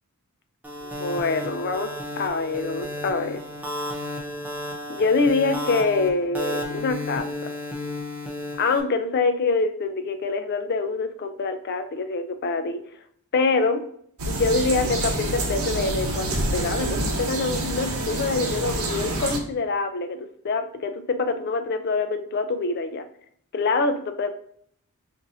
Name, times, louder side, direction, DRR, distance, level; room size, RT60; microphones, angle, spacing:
sound 1, 0.6-8.8, left 1 dB, 5° right, 0.5 m, -33 dB
voice 1, 0.8-3.4 4.9-7.3 8.6-12.8 13.3-13.8 14.3-23.0 23.5-24.3, left 3 dB, 45° left, 8 dB, 0.4 m, -25 dB
sound 2, 14.2-19.4, right 1 dB, 70° right, 0.7 m, -27 dB
5.3 x 2.6 x 2.6 m, 0.65 s
head